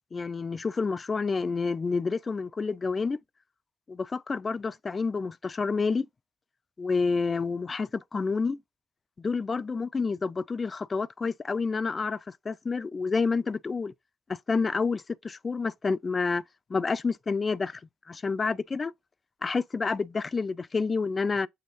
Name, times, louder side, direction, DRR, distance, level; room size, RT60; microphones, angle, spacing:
voice 1, 0.1-3.2 3.9-6.1 6.8-8.6 9.2-13.9 14.3-16.4 16.7-17.8 18.1-18.9 19.4-21.5, left 4 dB, 35° left, 0.3 m, -29 dB
7.0 x 2.4 x 3.1 m
hypercardioid pair, 45°, 0 cm